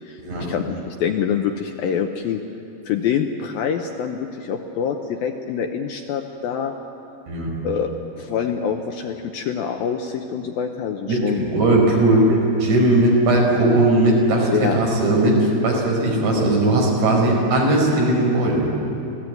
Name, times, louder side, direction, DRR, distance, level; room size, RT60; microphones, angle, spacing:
voice 1, 0.1-2.4 2.9-6.7 7.6-11.4 14.5-14.8, left 7 dB, 75° left, 4 dB, 2.2 m, -25 dB
voice 2, 11.1-18.7, right 1 dB, 80° right, -1 dB, 7.1 m, -18 dB
26.0 x 17.5 x 9.3 m, 3.0 s
omnidirectional pair, 5.1 m